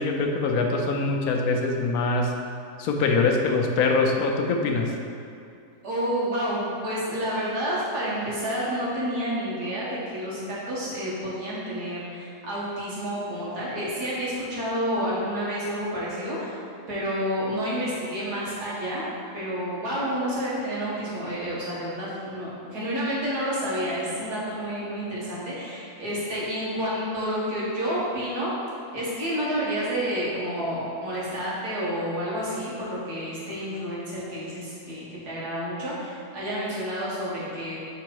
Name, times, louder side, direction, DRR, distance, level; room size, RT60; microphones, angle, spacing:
voice 1, 0.0-2.3 2.8-4.9, left 3 dB, 70° left, 2 dB, 1.0 m, -23 dB
voice 2, 5.8-16.6 16.9-19.1 19.3-28.5 28.9-37.8, equal, 80° right, -7 dB, 2.1 m, -29 dB
6.9 x 3.8 x 4.7 m, 2.5 s
omnidirectional pair, 1.7 m